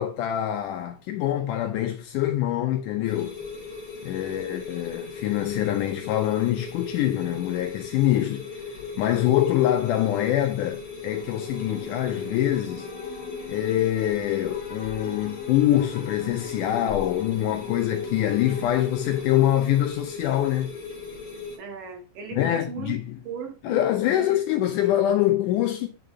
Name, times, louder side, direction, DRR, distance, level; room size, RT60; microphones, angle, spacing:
voice 1, 0.0-3.3 4.0-12.9 13.5-20.7 22.4-23.0 23.6-25.9, left 12 dB, 80° left, 1.9 m, -24 dB
sound 1, 3.0-21.6, left 4 dB, 35° left, 1.9 m, -38 dB
voice 2, 4.2-4.6 21.6-23.0 23.2-23.8 24.1-24.3, right 6 dB, 75° right, 2.8 m, -38 dB
sound 2, 11.1-19.5, left 3 dB, 50° left, 1.7 m, -42 dB
9.3 x 4.1 x 2.7 m
omnidirectional pair, 4.1 m